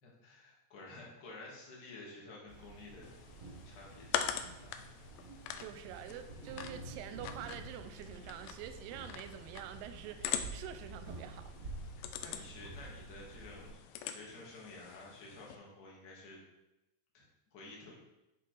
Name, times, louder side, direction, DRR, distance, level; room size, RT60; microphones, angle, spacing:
voice 1, 0.0-3.1 3.6-4.8 12.2-16.4 17.1-17.2 17.5-17.9, left 2 dB, 50° left, -4 dB, 1.3 m, -51 dB
sound 1, 2.5-13.7, right 2 dB, 35° right, 1.5 m, -50 dB
Engine, 2.9-13.0, left 10 dB, 70° left, 3.1 m, -65 dB
sound 2, 3.0-15.6, left 9 dB, 90° left, 2.1 m, -44 dB
voice 2, 5.6-11.5, right 9 dB, 85° right, 8 dB, 2.4 m, -46 dB
8.5 x 5.6 x 4.0 m, 0.95 s
omnidirectional pair, 4.9 m